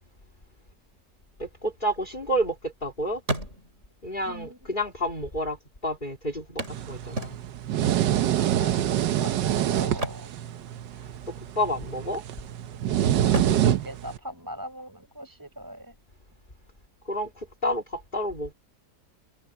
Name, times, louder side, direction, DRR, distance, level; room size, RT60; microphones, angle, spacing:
voice 1, 1.4-3.2 4.0-7.4 10.9-12.2 17.0-18.5, equal, 30° left, 3.2 m, -30 dB
sound 1, 1.6-2.8 3.1-4.0 4.9-5.0 5.2-5.3 6.6-7.8 9.8-11.1 11.4-11.7 12.2-12.8 13.2-15.0 17.0-17.1 17.5-17.6, right 2 dB, 40° right, 4.2 m, -35 dB
voice 2, 4.3-4.6 8.3-10.3 13.2-15.9, equal, 10° right, 6.6 m, -41 dB
sound 2, 6.7-14.2, right 11 dB, 85° right, 1.5 m, -26 dB
omnidirectional pair, 1.8 m